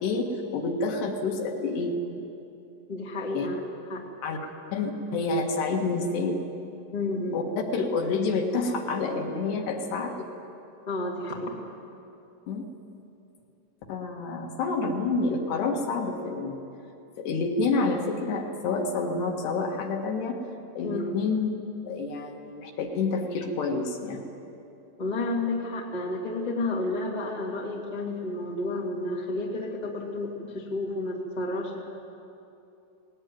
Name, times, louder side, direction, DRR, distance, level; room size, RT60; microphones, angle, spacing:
voice 1, 0.0-2.0 3.3-3.5 4.2-4.4 4.7-6.4 7.3-10.3 12.5-12.7 13.9-16.6 17.2-20.4 20.8-21.5 21.8-24.2, left 3 dB, 65° left, 2 dB, 3.4 m, -28 dB
voice 2, 2.9-3.6 3.9-4.0 6.9-7.4 10.9-11.6 20.8-21.0 25.0-31.8, left 2 dB, 40° left, -2 dB, 0.5 m, -31 dB
19.0 x 19.0 x 9.4 m, 2.7 s
omnidirectional pair, 5.7 m